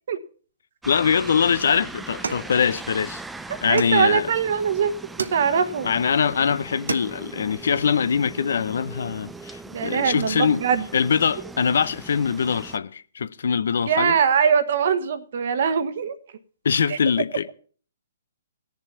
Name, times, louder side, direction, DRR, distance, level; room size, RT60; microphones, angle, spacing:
voice 1, 0.8-3.2 3.6-4.3 5.8-10.6 10.9-14.2 16.6-17.5, left 7 dB, 70° left, 0.6 m, -23 dB
sound 1, 0.8-12.8, right 3 dB, 5° right, 0.5 m, -40 dB
sound 2, 2.2-3.2 3.8-4.5 5.2-5.9 6.4-6.5 6.7-7.4, right 5 dB, 85° right, 0.7 m, -34 dB
voice 2, 3.7-4.9 5.2-5.9 9.7-10.8 13.8-16.1 16.9-17.0, right 7 dB, 60° right, 1.2 m, -22 dB
16.5 x 7.0 x 5.8 m
hypercardioid pair, 140°, 0 cm